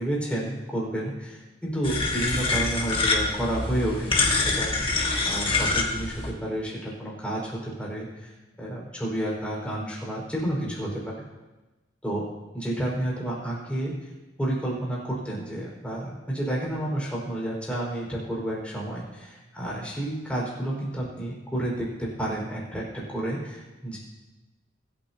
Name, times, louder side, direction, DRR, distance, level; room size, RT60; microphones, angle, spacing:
voice 1, 0.0-5.0 5.2-8.3 8.6-11.1 12.0-12.2 12.5-13.9 14.4-24.0, right 1 dB, 5° left, -5 dB, 4.7 m, -30 dB
sound 1, 1.8-6.3, left 3 dB, 30° left, 1.5 m, -25 dB
24.0 x 8.9 x 2.8 m, 1.1 s
head